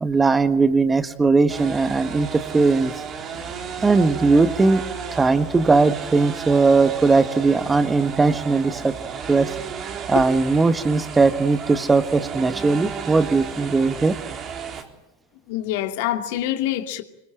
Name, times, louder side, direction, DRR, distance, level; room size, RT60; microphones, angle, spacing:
voice 1, 0.0-2.9 3.8-4.8 5.1-8.9 9.3-9.5 10.1-14.1, right 3 dB, 15° right, 1.6 m, -19 dB
sound 1, 1.5-14.8, right 7 dB, 35° right, 3.8 m, -33 dB
voice 2, 15.5-17.0, left 13 dB, 60° left, 2.5 m, -25 dB
25.5 x 22.0 x 8.8 m
hypercardioid pair, 85°, 0 cm